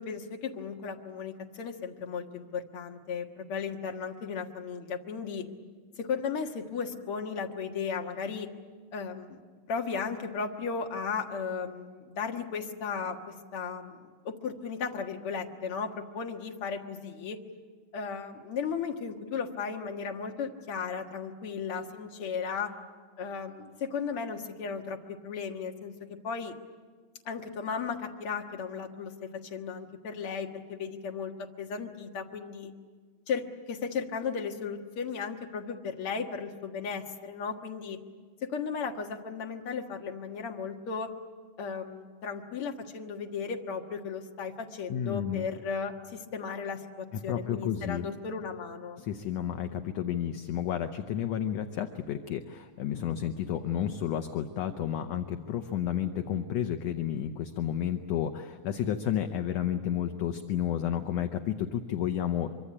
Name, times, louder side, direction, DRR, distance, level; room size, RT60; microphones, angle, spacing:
voice 1, 0.0-5.5 6.0-8.5 8.9-9.4 9.7-17.4 17.9-22.7 23.2-26.6 27.3-32.7 33.3-38.0 38.4-41.1 41.6-49.0, left 6 dB, 50° left, 3 dB, 2.2 m, -35 dB
voice 2, 44.9-45.5 47.1-48.1 49.0-62.5, left 9 dB, 70° left, 7 dB, 1.9 m, -31 dB
24.5 x 24.5 x 8.7 m, 1.5 s
omnidirectional pair, 3.5 m